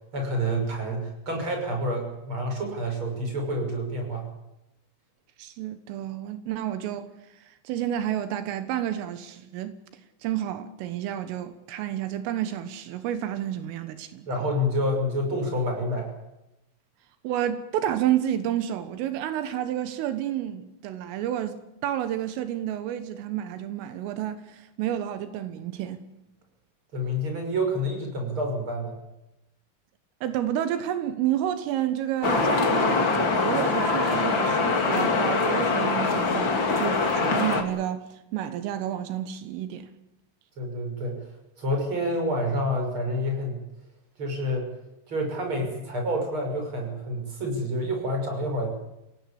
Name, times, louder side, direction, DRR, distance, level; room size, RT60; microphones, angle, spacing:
voice 1, 0.1-4.2 14.3-16.1 26.9-28.9 40.6-41.3 41.6-43.6 44.2-44.6 45.1-48.7, equal, 25° right, 6.6 m, -28 dB
voice 2, 5.4-9.8 10.2-14.3 17.2-26.0 30.2-39.9, right 11 dB, 85° right, 3.8 m, -30 dB
sound 1, 32.2-37.6, left 4 dB, 35° left, 2.1 m, -23 dB
29.0 x 17.0 x 8.5 m
omnidirectional pair, 5.8 m